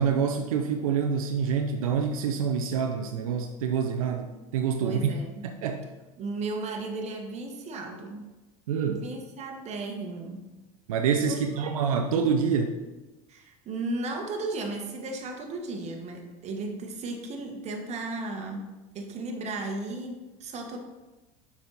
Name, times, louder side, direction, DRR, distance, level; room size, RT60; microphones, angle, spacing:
voice 1, 0.0-5.1 5.4-5.9 8.7-9.0 10.9-12.8, right 6 dB, 85° right, 5 dB, 0.6 m, -26 dB
voice 2, 4.8-5.4 6.2-8.2 8.9-10.5 11.3-11.9 13.3-18.7 18.9-20.8, right 2 dB, 40° right, 3 dB, 1.4 m, -35 dB
6.7 x 5.5 x 4.1 m, 1.1 s
hypercardioid pair, 95°, 17 cm